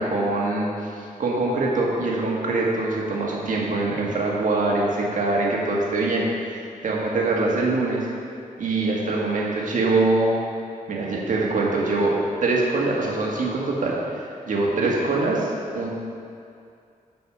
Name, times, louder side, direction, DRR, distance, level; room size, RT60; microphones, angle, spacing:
voice 1, 0.0-6.3 6.8-8.1 8.6-10.4 10.9-12.2 12.4-15.9, right 2 dB, 65° right, -3 dB, 1.6 m, -23 dB
8.6 x 6.2 x 4.9 m, 2.4 s
wide cardioid pair, 135°, 14 cm